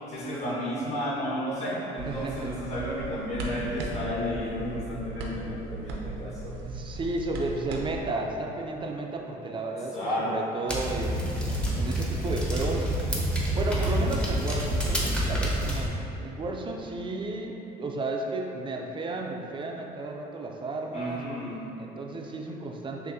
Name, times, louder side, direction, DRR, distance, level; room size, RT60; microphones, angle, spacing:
voice 1, 0.1-6.5 9.9-10.3 20.9-21.6, equal, 40° left, -8 dB, 1.4 m, -32 dB
sound 1, 2.0-8.0, right 2 dB, 85° right, 0.6 m, -37 dB
voice 2, 2.1-2.5 6.6-10.0 10.2-12.9 13.5-15.9 16.2-21.2 21.8-23.1, right 2 dB, 30° right, 1 dB, 0.4 m, -33 dB
sound 2, 10.7-15.9, right 1 dB, 5° left, 0.7 m, -27 dB
6.2 x 2.5 x 2.7 m, 3.0 s
cardioid pair, 110°, 17 cm